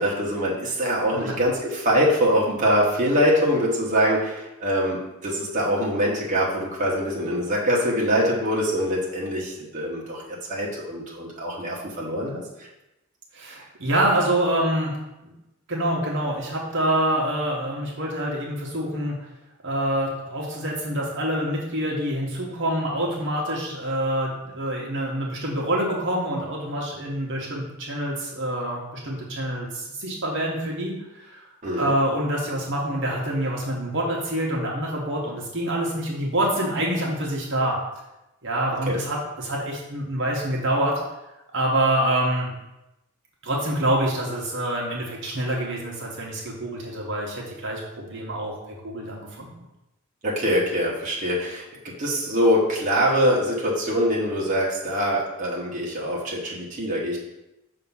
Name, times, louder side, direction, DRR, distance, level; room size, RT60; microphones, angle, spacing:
voice 1, 0.0-10.2 10.5-12.4 31.6-31.9 38.9-39.0 50.2-51.6 52.0-57.2, equal, 35° right, -4 dB, 1.1 m, -23 dB
voice 2, 13.3-14.9 15.2-15.3 15.7-19.2 19.6-31.0 31.2-31.4 31.8-37.8 38.4-40.9 41.5-42.5 43.4-48.5 48.8-49.5, right 1 dB, 60° right, -3 dB, 1.1 m, -26 dB
5.8 x 2.9 x 5.5 m, 0.93 s
head